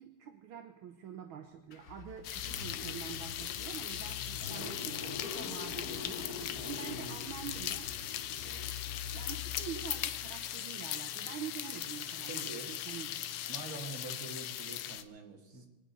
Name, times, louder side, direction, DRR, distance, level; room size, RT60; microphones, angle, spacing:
voice 1, 0.0-7.9 8.4-8.8 9.1-13.2, right 8 dB, 70° right, 6 dB, 1.7 m, -46 dB
Car / Engine starting, 1.7-10.5, left 5 dB, 50° left, 1.5 m, -44 dB
sound 1, 2.2-15.0, left 11 dB, 90° left, 1.7 m, -39 dB
voice 2, 4.4-4.8 6.6-6.8 12.3-12.8 13.5-15.7, right 3 dB, 45° right, 1 dB, 2.4 m, -46 dB
23.5 x 9.2 x 5.4 m, 1.1 s
omnidirectional pair, 2.4 m